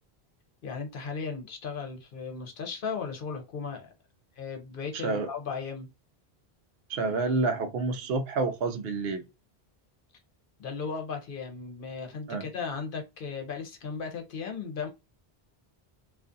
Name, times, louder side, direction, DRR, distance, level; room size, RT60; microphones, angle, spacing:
voice 1, 0.6-3.9 4.4-5.9 10.6-14.9, left 5 dB, 60° left, 0.8 m, -36 dB
voice 2, 6.9-9.2 12.3-12.5, right 3 dB, 70° right, 0.8 m, -28 dB
2.4 x 2.4 x 2.5 m
omnidirectional pair, 1.1 m